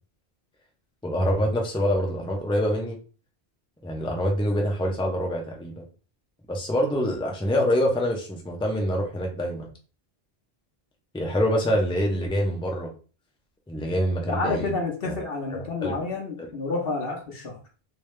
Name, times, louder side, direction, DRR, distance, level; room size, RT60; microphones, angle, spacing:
voice 1, 1.0-3.0 3.8-5.8 6.5-9.7 11.1-12.9 13.7-14.8 15.0-15.2 15.8-15.9 16.4-16.5, equal, 5° left, 0 dB, 0.6 m, -25 dB
voice 2, 14.3-17.6, left 3 dB, 65° left, -1 dB, 1.2 m, -29 dB
3.5 x 2.7 x 3.2 m, 0.37 s
omnidirectional pair, 1.0 m